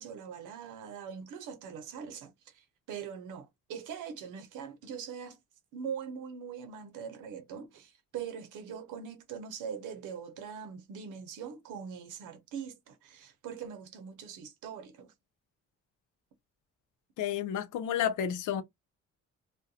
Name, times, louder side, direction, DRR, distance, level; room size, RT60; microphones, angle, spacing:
voice 1, 0.0-5.4 5.7-15.1, right 7 dB, 85° right, 0.7 m, -42 dB
voice 2, 17.2-18.6, left 9 dB, 85° left, 0.6 m, -31 dB
2.3 x 2.2 x 2.6 m
cardioid pair, 90°, 30 cm